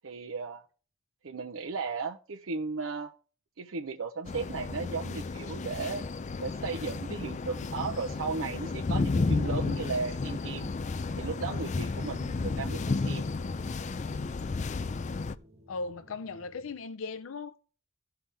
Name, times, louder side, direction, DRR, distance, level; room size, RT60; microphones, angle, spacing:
voice 1, 0.0-0.6 1.2-3.1 3.6-6.1 6.4-10.7 11.1-13.2, right 4 dB, 80° right, 0.7 m, -35 dB
sound 1, 4.2-15.3, left 3 dB, 35° left, 0.4 m, -32 dB
sound 2, 6.6-16.8, equal, 30° right, 1.3 m, -57 dB
voice 2, 15.7-17.6, left 4 dB, 85° left, 0.5 m, -37 dB
15.5 x 5.8 x 3.4 m
head